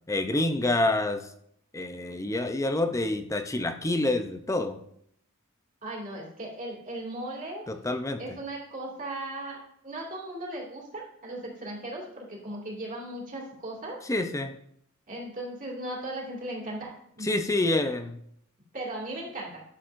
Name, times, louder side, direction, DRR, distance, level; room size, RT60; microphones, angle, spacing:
voice 1, 0.1-1.2 1.7-4.8 7.7-8.2 14.1-14.5 17.2-18.2, left 2 dB, 15° left, 8 dB, 0.5 m, -27 dB
voice 2, 5.8-7.6 8.2-9.6 9.8-14.0 15.1-17.3 18.7-19.6, right 1 dB, 40° right, -3 dB, 2.4 m, -37 dB
11.0 x 6.9 x 2.6 m, 0.70 s
head